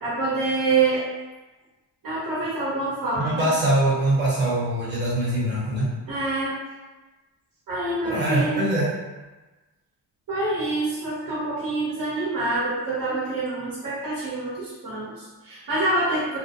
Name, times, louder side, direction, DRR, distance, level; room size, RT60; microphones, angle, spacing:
voice 1, 0.0-1.0 2.0-3.5 6.1-6.5 7.7-8.6 10.3-16.4, right 2 dB, 55° right, -8 dB, 0.9 m, -26 dB
voice 2, 3.2-5.9 8.0-8.9, right 1 dB, 25° right, -8 dB, 1.1 m, -23 dB
2.5 x 2.0 x 2.9 m, 1.2 s
cardioid pair, 105°, 40 cm